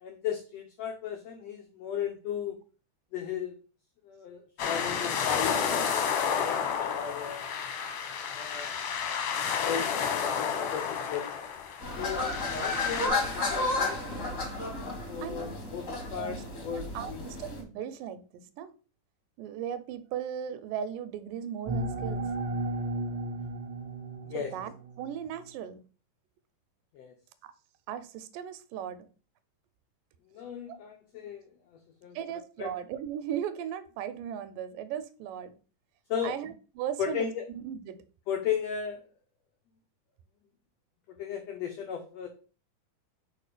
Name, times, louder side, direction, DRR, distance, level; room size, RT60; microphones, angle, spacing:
voice 1, 0.0-2.6 3.1-3.6 4.0-7.5 8.3-8.7 9.6-11.4 12.0-14.4 15.1-17.2 24.2-24.5 26.9-27.1 30.3-31.4 31.7-32.7 36.1-36.4 37.0-37.4 38.3-39.0 41.1-42.3, left 8 dB, 85° left, 5 dB, 1.4 m, -36 dB
sound 1, 4.6-13.1, left 7 dB, 65° left, 1.9 m, -31 dB
sound 2, 11.8-17.6, left 2 dB, 30° left, 1.7 m, -32 dB
voice 2, 16.1-16.4 16.7-18.7 19.4-22.3 24.3-25.8 27.4-27.5 27.9-29.1 30.7-30.8 32.2-35.6 36.2-38.0, right 9 dB, 85° right, 13 dB, 2.2 m, -37 dB
sound 3, 21.7-25.1, right 2 dB, 50° right, 1.1 m, -34 dB
4.9 x 4.5 x 4.9 m, 0.38 s
omnidirectional pair, 3.8 m